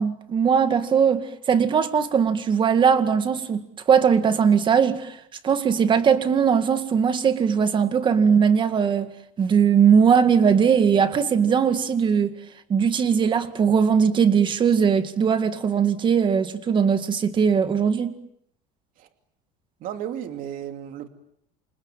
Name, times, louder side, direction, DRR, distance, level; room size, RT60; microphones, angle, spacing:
voice 1, 0.0-3.6 3.9-5.2 5.4-9.1 9.4-12.4 12.7-18.2, right 7 dB, 25° right, 2.1 m, -20 dB
voice 2, 19.8-21.1, right 10 dB, 50° right, 2.7 m, -33 dB
29.0 x 27.5 x 7.5 m
cardioid pair, 150°, 18 cm